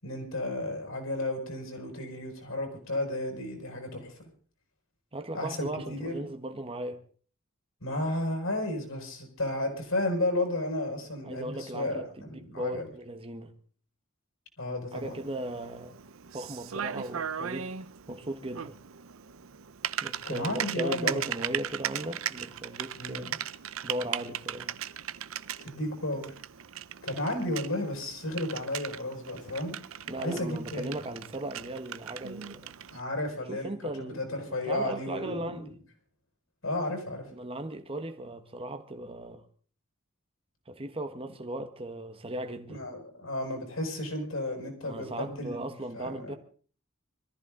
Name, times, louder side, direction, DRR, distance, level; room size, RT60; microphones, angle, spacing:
voice 1, 0.0-4.1 5.3-6.3 7.8-12.9 14.6-15.2 20.2-21.3 22.9-23.3 25.6-26.3 27.0-31.0 32.9-33.7 34.0-35.7 36.6-37.3 42.7-45.7 45.9-46.3, left 1 dB, 75° left, 5.8 m, -33 dB
voice 2, 5.1-7.0 11.2-13.5 14.9-16.0 16.3-17.7 18.1-18.8 20.0-23.2 23.8-24.7 30.1-32.7 33.5-35.7 37.3-39.4 40.7-42.8 44.8-46.3, right 1 dB, 25° right, 1.3 m, -37 dB
Typing, 14.9-33.0, right 9 dB, 75° right, 0.7 m, -38 dB
24.5 x 14.0 x 3.8 m
head